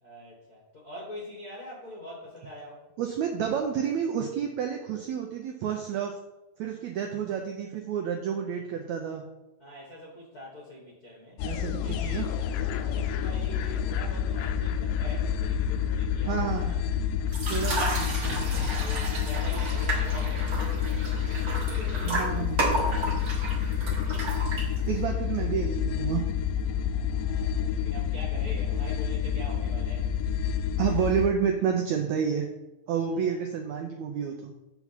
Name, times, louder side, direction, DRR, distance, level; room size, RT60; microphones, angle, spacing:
voice 1, 0.0-2.8 9.6-11.4 11.8-16.8 17.5-18.1 18.7-22.7 27.0-30.1 33.0-33.4, left 1 dB, 50° left, -4 dB, 1.1 m, -44 dB
voice 2, 3.0-6.1 6.6-9.2 11.4-12.3 16.3-16.7 17.5-18.7 22.0-22.6 24.9-26.2 30.8-32.5 32.9-34.5, right 8 dB, 85° right, 2 dB, 1.6 m, -30 dB
sound 1, 11.4-31.3, left 8 dB, 85° left, 1.7 m, -29 dB
sound 2, 17.3-25.0, right 2 dB, 40° right, 1.3 m, -32 dB
7.1 x 4.7 x 5.7 m, 0.97 s
omnidirectional pair, 4.1 m